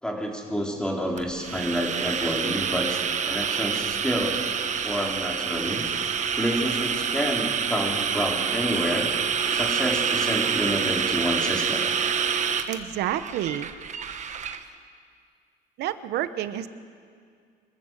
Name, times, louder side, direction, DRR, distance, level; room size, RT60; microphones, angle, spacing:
voice 1, 0.0-4.4 4.8-5.8 6.4-9.1 9.5-11.8, equal, 5° left, 0 dB, 3.5 m, -29 dB
sound 1, 1.2-14.6, right 7 dB, 45° right, 1.2 m, -27 dB
voice 2, 12.7-13.7 15.8-16.7, right 12 dB, 80° right, 13 dB, 0.9 m, -29 dB
25.0 x 14.0 x 7.5 m, 2.2 s
cardioid pair, 110°, 17 cm